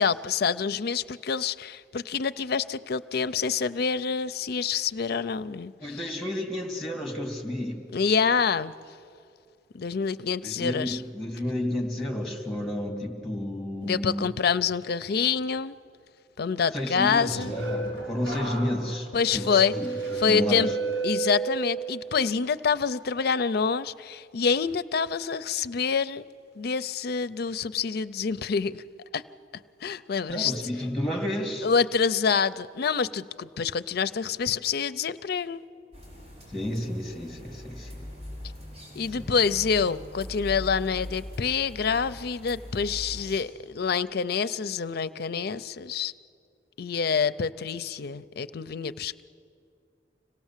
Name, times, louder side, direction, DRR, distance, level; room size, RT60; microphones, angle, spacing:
voice 1, 0.0-6.0 7.9-8.7 9.7-11.0 13.8-15.8 16.4-17.5 19.1-19.7 20.2-20.7 21.0-26.3 26.6-28.8 29.1-29.2 29.8-30.5 31.6-35.6 38.9-46.1 46.8-49.2, left 6 dB, 60° left, 14 dB, 0.5 m, -27 dB
voice 2, 5.8-7.8 10.4-14.3 16.7-20.7 30.3-31.7 36.5-38.0 39.1-39.2, left 1 dB, ahead, 2 dB, 2.5 m, -31 dB
sound 1, 16.9-22.0 22.4-22.8, right 4 dB, 85° right, 5.5 m, -32 dB
sound 2, 35.9-43.4, left 1 dB, 40° right, 5.1 m, -41 dB
25.5 x 17.5 x 7.4 m, 2.4 s
head